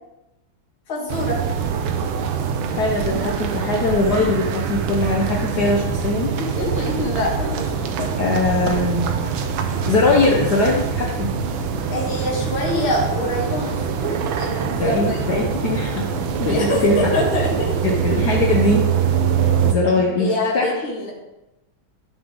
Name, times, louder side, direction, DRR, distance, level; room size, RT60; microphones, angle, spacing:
voice 1, 0.9-1.4 6.4-8.1 11.9-15.2 16.4-17.7 20.2-21.1, left 1 dB, 75° left, -4 dB, 2.9 m, -25 dB
sound 1, 1.1-19.7, right 7 dB, 80° right, 1.6 m, -24 dB
voice 2, 2.7-6.3 8.2-9.0 9.9-11.3 14.8-16.1 16.4-17.1 17.8-18.9 19.6-20.7, left 2 dB, 55° left, -1 dB, 1.5 m, -21 dB
12.0 x 6.5 x 3.8 m, 0.96 s
omnidirectional pair, 2.2 m